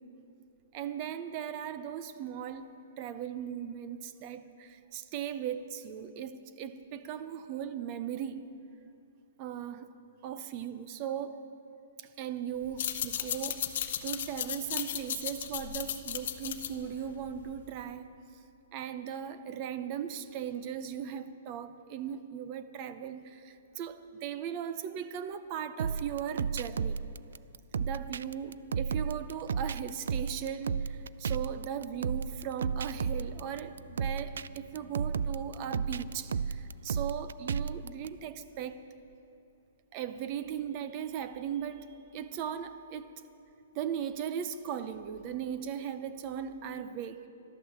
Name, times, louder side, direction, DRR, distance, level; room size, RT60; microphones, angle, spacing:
voice 1, 0.7-8.5 9.4-10.0 10.2-11.4 12.0-13.7 14.0-18.2 18.7-27.0 27.8-38.8 39.9-41.9 42.1-43.1 43.7-47.3, right 9 dB, 25° right, 11 dB, 0.5 m, -38 dB
sound 1, 12.7-17.8, left 10 dB, 45° left, 0.8 m, -36 dB
sound 2, 25.8-38.1, right 6 dB, 85° right, 0.3 m, -34 dB
sound 3, 31.9-38.3 38.6-38.7, right 2 dB, 70° right, 2.5 m, -52 dB
12.5 x 12.0 x 7.2 m, 2.7 s
hypercardioid pair, 180°, 0 cm